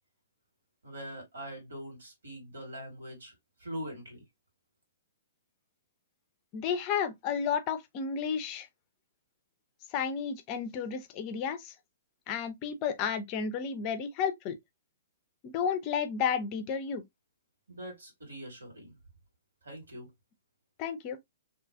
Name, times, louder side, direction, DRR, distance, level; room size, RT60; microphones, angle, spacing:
voice 1, 0.8-3.3 3.6-4.2 17.7-19.0 19.6-20.1, equal, 75° right, 1.7 m, -43 dB
voice 2, 6.5-8.7 9.9-11.7 12.3-14.6 15.4-17.0 20.8-21.2, left 7 dB, 35° left, 0.5 m, -32 dB
2.7 x 2.3 x 2.4 m
figure-of-eight pair, 115°, 0 cm